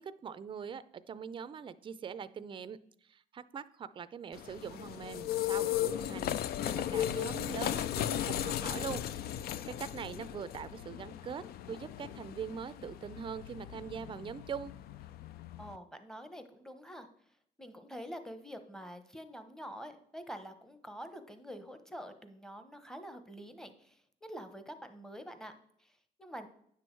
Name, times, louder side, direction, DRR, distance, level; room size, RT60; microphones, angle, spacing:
voice 1, 0.0-2.8 3.1-11.4 11.7-14.7, right 7 dB, 30° right, 15 dB, 0.4 m, -43 dB
sound 1, 4.3-15.8, left 11 dB, 65° left, 0.4 m, -36 dB
voice 2, 15.6-17.1 17.6-26.5, equal, 5° left, 9 dB, 0.9 m, -46 dB
9.5 x 6.2 x 4.6 m, 0.67 s
cardioid pair, 110°, 17 cm